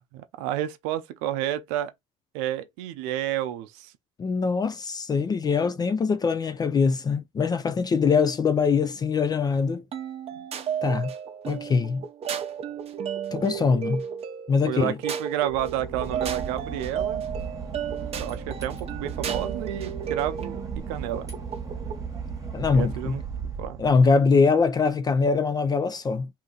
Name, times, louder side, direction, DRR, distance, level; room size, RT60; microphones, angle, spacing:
voice 1, 0.1-1.9 2.3-3.9 10.3-10.4 14.7-17.2 18.2-20.6 20.9-21.3 22.7-23.2 23.6-23.8, right 12 dB, 85° right, 0.6 m, -30 dB
voice 2, 4.2-9.8 10.8-11.1 11.4-12.0 13.3-14.0 14.5-15.0 22.5-23.2 23.8-26.3, left 5 dB, 25° left, 0.4 m, -23 dB
sound 1, 9.9-22.1, right 8 dB, 40° right, 0.6 m, -33 dB
Boat Water vehicle / Engine, 15.4-24.4, right 5 dB, 20° right, 1.2 m, -36 dB
2.8 x 2.6 x 3.8 m
supercardioid pair, 95°, 16 cm